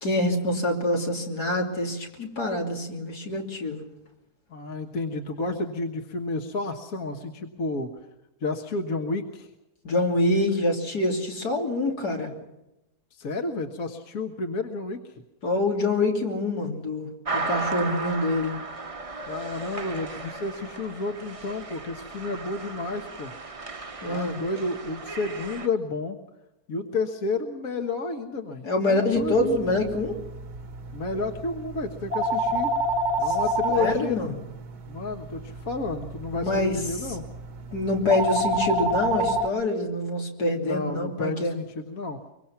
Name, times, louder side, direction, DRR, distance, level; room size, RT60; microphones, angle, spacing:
voice 1, 0.0-3.9 9.8-12.3 15.4-18.6 24.0-24.4 28.6-30.1 33.3-33.4 33.7-34.4 36.4-36.8 37.7-41.6, left 2 dB, 85° left, 1 dB, 3.6 m, -26 dB
voice 2, 4.5-7.9 8.4-9.5 13.1-15.2 19.2-23.3 24.1-26.2 26.7-29.5 30.9-32.7 33.2-34.2 34.9-37.2 40.6-42.2, left 3 dB, 65° left, 4 dB, 1.8 m, -31 dB
sound 1, 17.2-25.7, right 3 dB, 25° right, 0.9 m, -35 dB
sound 2, 29.1-39.5, right 1 dB, 80° right, 1.9 m, -29 dB
24.0 x 24.0 x 5.9 m, 0.94 s
omnidirectional pair, 1.6 m